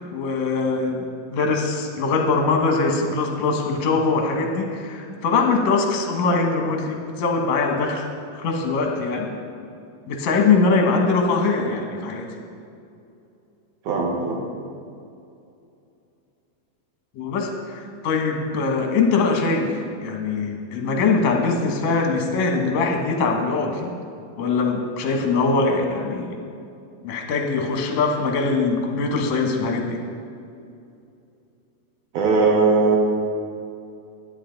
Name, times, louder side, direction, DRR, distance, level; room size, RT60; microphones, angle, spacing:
voice 1, 0.0-8.0 8.4-9.4 10.1-12.3 17.2-24.0 24.4-26.4 27.0-30.0, left 4 dB, 65° left, 2 dB, 2.3 m, -22 dB
voice 2, 13.8-14.4 32.1-33.0, right 4 dB, 70° right, -1 dB, 2.7 m, -19 dB
11.0 x 11.0 x 3.9 m, 2.5 s
omnidirectional pair, 3.6 m